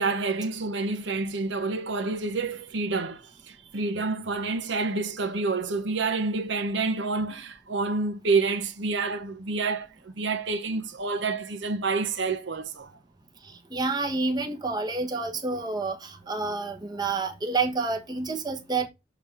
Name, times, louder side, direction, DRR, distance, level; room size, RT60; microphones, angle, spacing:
voice 1, 0.0-12.9, right 3 dB, 65° right, 0.8 m, -28 dB
voice 2, 13.7-18.9, right 3 dB, 20° right, 1.0 m, -29 dB
7.0 x 3.8 x 4.4 m
head